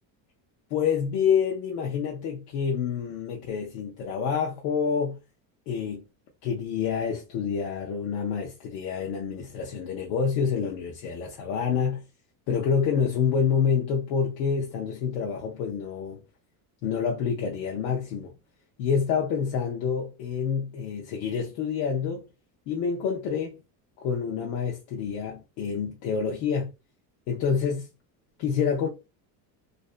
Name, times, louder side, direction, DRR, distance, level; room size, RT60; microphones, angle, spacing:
voice 1, 0.7-5.2 5.7-6.1 6.4-12.0 12.5-16.2 16.8-18.3 18.8-22.3 22.7-23.6 24.0-26.7 27.3-27.9 28.4-28.9, left 6 dB, 80° left, 0.7 m, -27 dB
2.6 x 2.1 x 2.4 m
cardioid pair, 155°, 45 cm